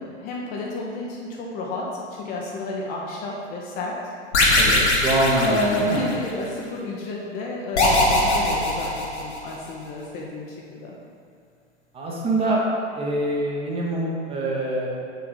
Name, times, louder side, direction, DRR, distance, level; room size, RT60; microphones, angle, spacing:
voice 1, 0.0-4.0 5.4-11.0, left 2 dB, 25° left, -3 dB, 0.6 m, -31 dB
sound 1, 4.3-6.3 7.8-9.6, left 2 dB, 65° left, 1.4 m, -20 dB
voice 2, 4.5-6.0 11.9-12.6 12.9-15.1, right 1 dB, 15° right, -3 dB, 0.9 m, -24 dB
6.1 x 3.6 x 5.0 m, 2.3 s
figure-of-eight pair, 100°, 36 cm